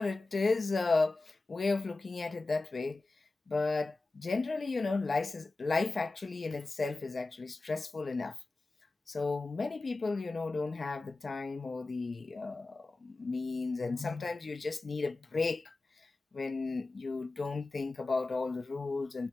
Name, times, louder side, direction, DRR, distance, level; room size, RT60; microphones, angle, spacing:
voice 1, 0.0-3.0 3.5-8.4 9.1-15.7 16.3-19.3, left 3 dB, 80° left, 0.3 m, -33 dB
2.8 x 2.2 x 2.8 m
wide cardioid pair, 85°, 0 cm